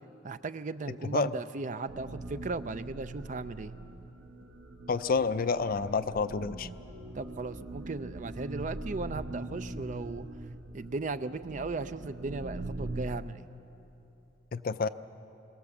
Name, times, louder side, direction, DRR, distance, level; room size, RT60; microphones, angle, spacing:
voice 1, 0.2-3.7 7.1-10.3 10.7-13.4, right 3 dB, 40° right, 12 dB, 0.5 m, -36 dB
sound 1, 1.9-13.2, right 2 dB, 85° right, 1.2 m, -42 dB
voice 2, 4.9-6.7 14.5-14.9, left 4 dB, 45° left, 12 dB, 0.5 m, -29 dB
23.0 x 17.5 x 7.2 m, 2.9 s
head